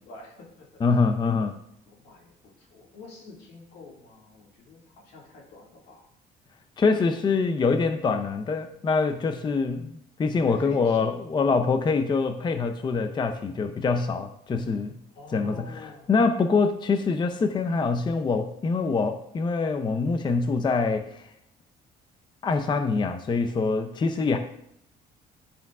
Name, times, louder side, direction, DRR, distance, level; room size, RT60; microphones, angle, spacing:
voice 1, 0.0-0.7 1.2-1.4 1.9-6.1 6.9-7.4 10.4-11.2 14.7-14.8 15.2-16.1 24.2-24.3, left 4 dB, 75° left, -1 dB, 2.1 m, -46 dB
voice 2, 0.8-1.5 6.8-9.9 10.2-14.9 15.3-21.2 22.4-24.4, left 4 dB, 25° left, 7 dB, 0.5 m, -25 dB
11.0 x 5.1 x 2.4 m, 0.74 s
cardioid pair, 110°, 17 cm